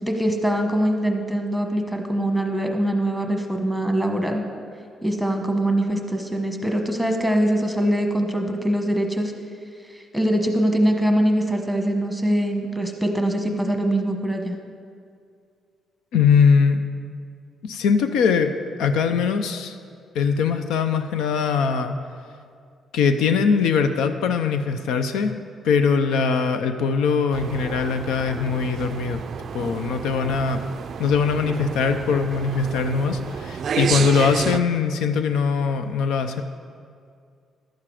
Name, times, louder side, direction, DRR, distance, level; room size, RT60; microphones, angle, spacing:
voice 1, 0.0-4.4 5.0-9.3 9.9-14.6, right 1 dB, ahead, 3 dB, 1.3 m, -23 dB
voice 2, 16.1-16.8 17.6-18.5 18.8-19.8 20.1-21.9 22.9-25.4 25.6-29.2 29.5-30.6 31.0-36.4, left 5 dB, 85° left, 8 dB, 0.5 m, -21 dB
sound 1, 27.3-34.6, right 7 dB, 55° right, 0.3 m, -31 dB
11.5 x 7.5 x 4.8 m, 2.3 s
cardioid pair, 90°, 0 cm